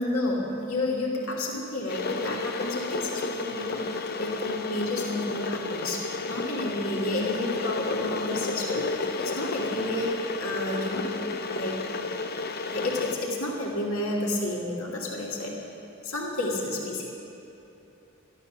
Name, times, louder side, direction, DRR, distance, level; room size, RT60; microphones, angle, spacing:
voice 1, 0.0-11.1 11.5-11.8 12.7-15.6 16.0-17.1, left 1 dB, 85° left, -2 dB, 2.5 m, -31 dB
Water / Boiling, 1.9-13.1, left 3 dB, 50° left, 0.7 m, -32 dB
13.0 x 12.0 x 6.7 m, 2.9 s
head